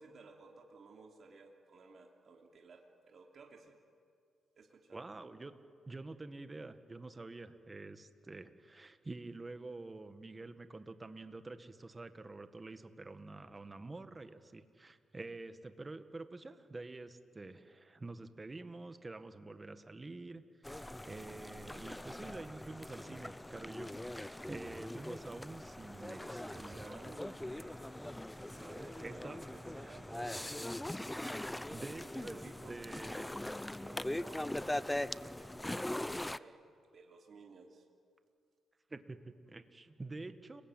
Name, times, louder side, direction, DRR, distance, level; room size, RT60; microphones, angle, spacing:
voice 1, 0.0-3.8 4.6-5.1 26.0-28.0 28.3-31.6 32.1-32.8 33.8-36.6 36.9-37.8, right 4 dB, 50° right, 2 dB, 3.1 m, -56 dB
voice 2, 4.9-5.5 5.8-27.0 29.0-29.4 29.8-30.0 31.3-32.4 32.7-33.4 38.9-40.6, right 2 dB, 25° right, 10 dB, 1.7 m, -48 dB
sound 1, 20.6-36.4, left 1 dB, 10° left, 0.6 m, -41 dB
30.0 x 21.0 x 9.3 m, 2.3 s
cardioid pair, 95°, 0 cm